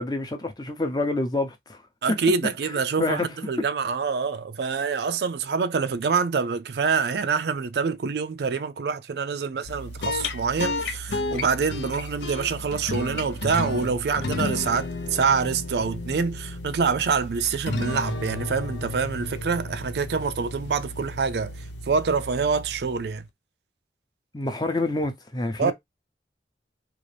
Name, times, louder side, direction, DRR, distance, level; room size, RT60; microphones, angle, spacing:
voice 1, 0.0-1.8 3.0-3.5 24.3-25.7, left 2 dB, 25° left, 0.7 m, -27 dB
voice 2, 2.0-23.2 25.6-25.7, right 5 dB, 70° right, 0.4 m, -26 dB
sound 1, 9.6-23.2, left 2 dB, 80° left, 0.6 m, -33 dB
3.8 x 2.5 x 3.3 m
head